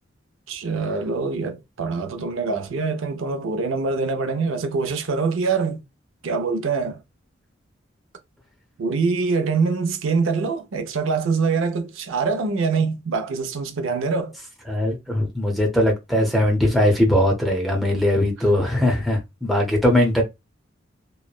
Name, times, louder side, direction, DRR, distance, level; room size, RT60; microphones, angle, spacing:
voice 1, 0.5-5.8 6.2-7.0 8.8-14.4, right 4 dB, 85° right, 0.5 m, -24 dB
voice 2, 14.7-20.2, left 1 dB, ahead, 0.7 m, -20 dB
3.0 x 2.1 x 2.3 m
head